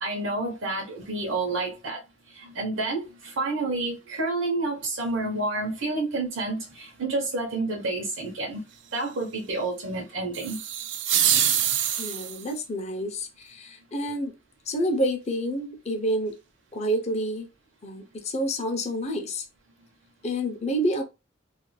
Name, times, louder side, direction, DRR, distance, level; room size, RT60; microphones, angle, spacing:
voice 1, 0.0-2.0 2.3-8.6 8.9-10.6, right 2 dB, 80° right, 0.7 m, -29 dB
sound 1, 10.3-12.5, right 10 dB, 65° right, 0.4 m, -25 dB
voice 2, 12.0-14.4 14.7-16.4 16.7-17.5 17.8-19.4 20.2-21.0, equal, 35° left, 0.5 m, -28 dB
2.4 x 2.2 x 3.0 m
head